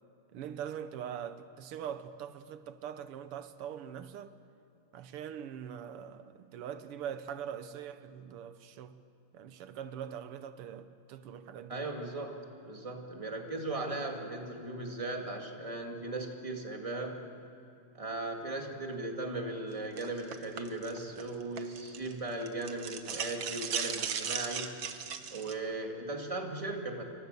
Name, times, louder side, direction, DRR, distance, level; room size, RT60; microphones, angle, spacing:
voice 1, 0.3-4.3 4.9-9.0 9.3-11.8, right 9 dB, 85° right, 1.9 m, -42 dB
voice 2, 11.7-17.2 17.9-24.8 25.3-27.0, right 2 dB, 15° right, 2.2 m, -37 dB
sound 1, 20.0-22.1 22.4-25.5, right 7 dB, 60° right, 1.8 m, -37 dB
27.5 x 24.5 x 6.8 m
omnidirectional pair, 2.4 m